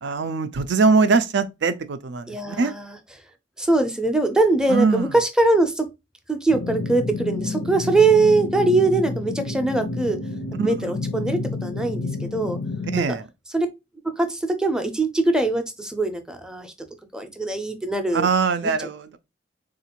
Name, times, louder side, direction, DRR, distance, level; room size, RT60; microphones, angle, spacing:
voice 1, 0.0-2.7 4.7-5.2 10.6-10.7 12.9-13.3 18.1-19.2, right 4 dB, 65° right, 0.4 m, -22 dB
voice 2, 2.3-2.9 3.6-5.9 6.3-10.2 10.6-12.6 13.5-13.7 14.0-16.7 17.1-18.3 18.8-18.9, right 2 dB, 5° right, 0.5 m, -22 dB
sound 1, 6.5-13.0, left 3 dB, 70° left, 0.4 m, -30 dB
3.7 x 2.5 x 2.8 m
head